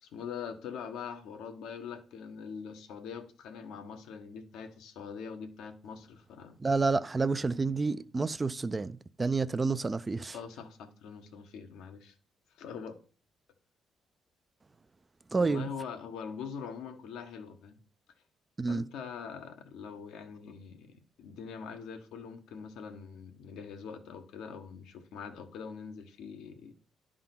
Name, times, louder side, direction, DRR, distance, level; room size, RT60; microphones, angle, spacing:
voice 1, 0.0-6.6 10.3-12.1 12.5-13.0 15.3-17.8 18.7-26.7, left 6 dB, 85° left, 1.1 m, -43 dB
voice 2, 6.6-10.4 15.3-15.7 18.6-18.8, right 4 dB, 25° right, 0.4 m, -29 dB
10.5 x 3.8 x 5.9 m
cardioid pair, 90°, 0 cm